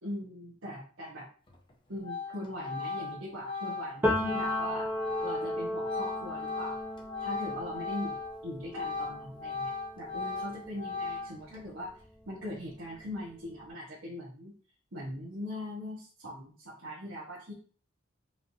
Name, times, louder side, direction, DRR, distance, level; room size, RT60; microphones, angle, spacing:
voice 1, 0.0-1.3 1.9-4.9 5.2-6.7 7.2-12.0 12.3-14.6 14.9-17.5, left 1 dB, 80° right, -6 dB, 1.4 m, -40 dB
Organ, 1.5-1.7 2.0-8.4 8.7-11.6, left 4 dB, 25° left, 0.7 m, -38 dB
Piano, 4.0-11.6 12.0-13.5, left 1 dB, 10° right, 0.9 m, -36 dB
4.8 x 3.2 x 2.8 m, 0.42 s
head